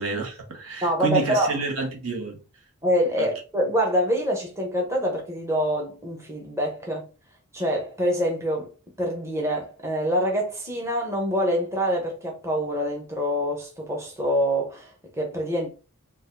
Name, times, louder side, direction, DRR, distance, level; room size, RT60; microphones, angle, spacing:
voice 1, 0.0-2.4 3.2-3.3, right 4 dB, 75° right, 1.2 m, -29 dB
voice 2, 0.8-1.6 2.8-7.1 7.5-8.7 9.0-15.7, equal, 10° right, 0.7 m, -25 dB
4.8 x 2.4 x 2.5 m
head